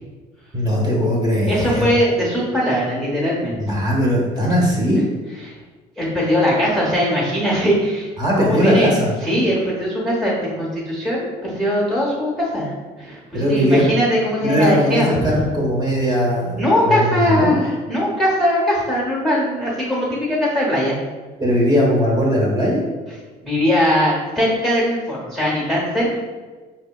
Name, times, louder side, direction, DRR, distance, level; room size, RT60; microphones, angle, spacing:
voice 1, 0.5-1.9 3.5-5.0 8.2-9.1 13.3-13.8 14.4-17.7 21.4-22.9, equal, 25° right, -4 dB, 1.1 m, -19 dB
voice 2, 1.5-3.6 5.4-5.5 6.0-8.9 9.2-12.7 13.0-15.4 16.6-21.0 23.4-26.2, equal, ahead, -6 dB, 1.0 m, -20 dB
4.7 x 2.8 x 2.3 m, 1.3 s
cardioid pair, 110°, 17 cm